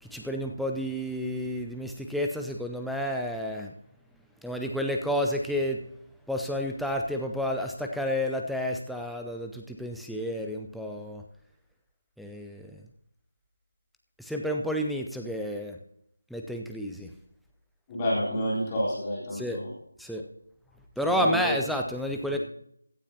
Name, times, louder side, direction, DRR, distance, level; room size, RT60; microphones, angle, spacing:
voice 1, 0.0-3.7 4.4-5.8 6.3-11.2 12.2-12.7 14.2-15.8 16.3-17.1 19.3-19.6 20.0-20.2 21.0-22.4, equal, ahead, 1 dB, 0.6 m, -30 dB
voice 2, 17.9-19.7 21.0-21.5, equal, 15° left, -7 dB, 3.8 m, -29 dB
16.5 x 11.5 x 2.8 m, 0.74 s
figure-of-eight pair, 160°, 0 cm